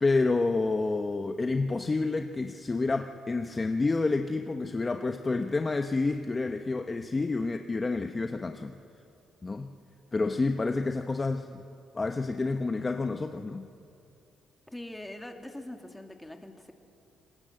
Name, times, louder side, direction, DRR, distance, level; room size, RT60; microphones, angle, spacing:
voice 1, 0.0-8.7 9.4-9.7 10.1-11.6 11.9-13.7, left 3 dB, 25° left, 6 dB, 1.0 m, -29 dB
voice 2, 14.7-16.7, left 1 dB, 10° left, 4 dB, 2.4 m, -42 dB
26.5 x 20.0 x 7.8 m, 2.6 s
cardioid pair, 90°, 0 cm